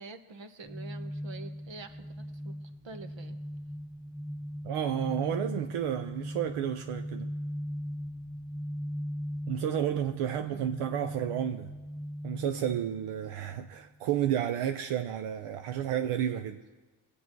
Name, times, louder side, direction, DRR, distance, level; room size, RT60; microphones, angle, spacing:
voice 1, 0.0-2.1 2.4-3.4 10.4-10.6, right 3 dB, 60° right, 1.3 m, -46 dB
sound 1, 0.6-13.7, equal, 10° left, 0.6 m, -39 dB
voice 2, 4.6-7.3 9.5-11.7 12.2-16.6, right 10 dB, 85° right, 0.7 m, -31 dB
20.5 x 8.5 x 4.6 m
supercardioid pair, 45°, 49 cm